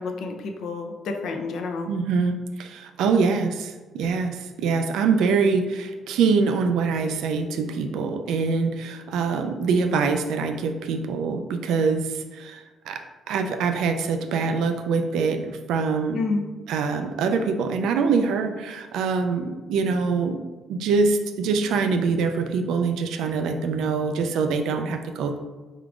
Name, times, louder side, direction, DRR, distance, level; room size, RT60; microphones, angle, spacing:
voice 1, 0.0-1.9 16.1-16.4, left 3 dB, 70° left, 4 dB, 0.5 m, -29 dB
voice 2, 1.9-16.2 16.7-20.4 20.7-25.4, right 4 dB, 85° right, 6 dB, 0.3 m, -24 dB
3.6 x 3.4 x 2.4 m, 1.2 s
cardioid pair, 115°, 0 cm